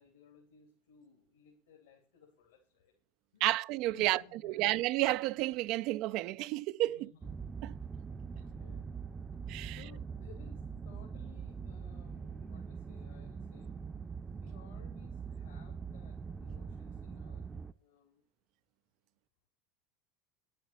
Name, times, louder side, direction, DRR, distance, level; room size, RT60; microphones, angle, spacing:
voice 1, 0.0-2.9 3.3-3.5 3.9-4.7 6.8-7.3 8.3-8.9 9.6-13.7 14.3-18.2, left 6 dB, 75° left, 3.0 m, -60 dB
voice 2, 3.4-7.1 7.6-7.7 9.5-9.8, right 17 dB, 60° right, 0.4 m, -31 dB
sound 1, 7.2-17.7, right 5 dB, 25° right, 0.7 m, -43 dB
10.0 x 7.6 x 7.0 m
hypercardioid pair, 75°, 0 cm